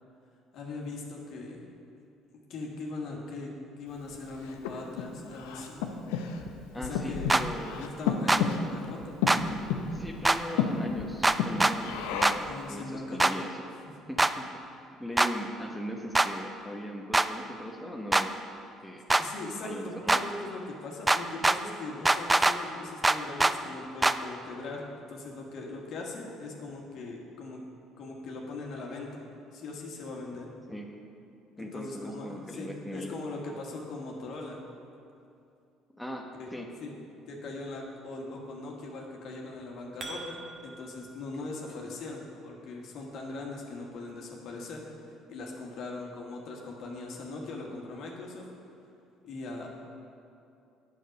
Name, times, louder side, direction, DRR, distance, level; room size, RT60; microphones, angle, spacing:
voice 1, 0.5-1.6 2.5-5.9 6.7-7.3 7.8-9.2 12.4-13.3 13.8-13.9 19.2-27.6 28.0-29.2 29.5-30.5 31.6-34.6 36.4-36.5 36.8-36.9 37.3-48.4 49.2-49.7, left 3 dB, 65° left, -1 dB, 1.5 m, -40 dB
Breathing, 4.1-12.6, left 5 dB, 80° left, 0.6 m, -33 dB
voice 2, 6.7-7.9 9.9-12.4 12.7-13.5 14.1-18.4 18.8-19.0 19.6-20.2 30.7-30.9 31.6-33.1 35.9-36.3 36.5-36.7, equal, ahead, 1 dB, 1.0 m, -39 dB
sound 1, 7.3-7.4 8.3-8.4 9.3-9.4 10.2-10.4 11.2-11.7 12.2-12.4 13.2-13.3 14.2-14.3 15.2-15.3 16.1-16.3 17.1-17.3 18.1-18.3 19.1-19.2 20.1-20.2 21.1-21.6 22.1-22.6 23.0-23.5 24.0-24.2, right 2 dB, 15° right, 0.4 m, -22 dB
sound 2, 39.5-41.0, right 2 dB, 50° right, 1.4 m, -43 dB
8.8 x 6.5 x 5.3 m, 2.6 s
hypercardioid pair, 65°, 0 cm